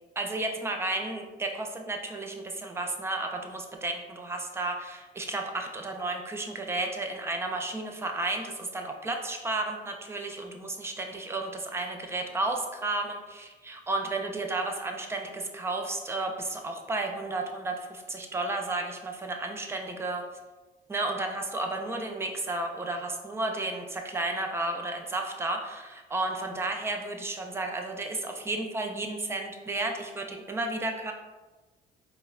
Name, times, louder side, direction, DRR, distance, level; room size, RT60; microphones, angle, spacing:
voice 1, 0.2-20.2 20.9-31.1, right 2 dB, 15° right, 3 dB, 0.3 m, -32 dB
3.6 x 2.1 x 2.3 m, 1.2 s
cardioid pair, 110°, 17 cm